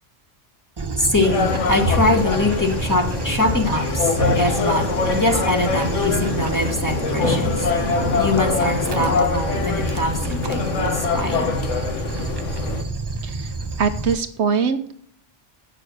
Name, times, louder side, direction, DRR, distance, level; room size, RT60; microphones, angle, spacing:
Dog, 0.8-14.1, right 3 dB, 30° right, 0.5 m, -29 dB
voice 1, 1.0-7.6 8.2-11.5, left 2 dB, 15° left, 1 dB, 1.8 m, -22 dB
sound 1, 1.2-12.8, left 5 dB, 85° left, 1.4 m, -25 dB
sound 2, 3.8-9.1, equal, 55° left, 4.1 m, -28 dB
voice 2, 13.8-14.9, right 6 dB, 70° right, 9 dB, 1.0 m, -22 dB
8.2 x 6.8 x 7.7 m, 0.65 s
omnidirectional pair, 1.2 m